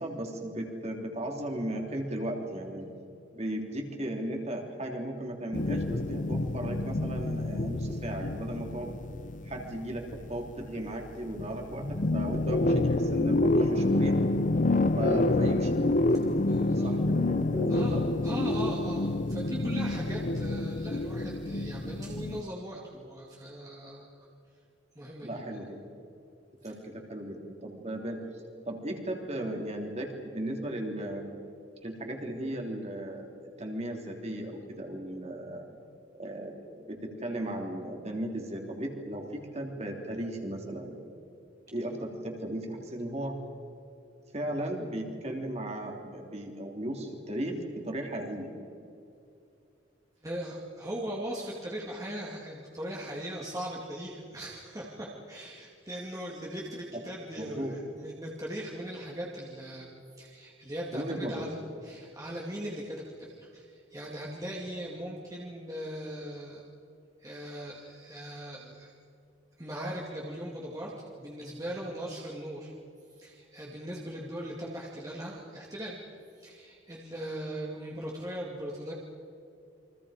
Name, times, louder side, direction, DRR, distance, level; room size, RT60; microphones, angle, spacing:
voice 1, 0.0-2.9 3.3-8.9 9.4-14.2 15.0-15.7 16.5-16.6 16.8-18.0 25.2-25.8 26.6-28.2 28.6-31.4 31.8-35.7 36.2-41.0 41.7-43.4 44.3-48.5 57.4-57.8 60.9-61.4, right 1 dB, 35° right, 1 dB, 3.3 m, -36 dB
sound 1, 5.5-11.1 11.4-22.4, left 2 dB, 40° left, 0.7 m, -28 dB
voice 2, 16.4-17.0 17.7-24.1 24.9-25.6 50.2-59.9 60.2-61.6 61.8-66.6 67.2-68.9 69.6-72.7 73.2-76.0 76.4-78.9, right 1 dB, 20° right, -4 dB, 2.4 m, -39 dB
29.0 x 24.5 x 5.1 m, 2.5 s
head